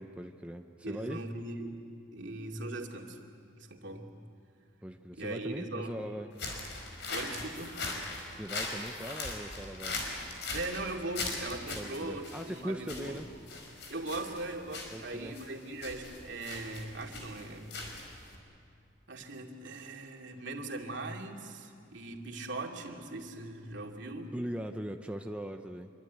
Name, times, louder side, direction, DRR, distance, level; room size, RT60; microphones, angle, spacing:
voice 1, 0.0-1.2 4.8-6.3 8.3-10.0 11.8-13.3 14.9-15.4 24.3-25.9, equal, 5° right, 4 dB, 0.8 m, -40 dB
voice 2, 0.8-1.8 2.1-3.2 3.6-4.1 5.1-6.0 7.1-7.8 10.5-13.2 13.9-17.7 19.1-24.3, right 2 dB, 65° right, 1 dB, 2.6 m, -40 dB
sound 1, 6.3-18.4, left 3 dB, 60° left, 5.0 m, -40 dB
26.0 x 24.0 x 9.4 m, 2.3 s
head